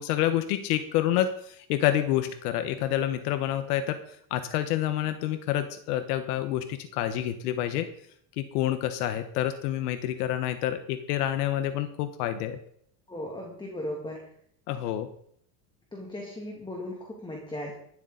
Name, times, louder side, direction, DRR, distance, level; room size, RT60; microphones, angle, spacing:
voice 1, 0.0-4.0 4.3-7.9 8.4-12.6 14.7-15.1, left 12 dB, 75° left, 10 dB, 1.3 m, -28 dB
voice 2, 13.1-14.2 15.9-17.7, left 1 dB, 10° left, 0 dB, 2.4 m, -37 dB
17.5 x 12.5 x 4.0 m, 0.67 s
supercardioid pair, 135°, 46 cm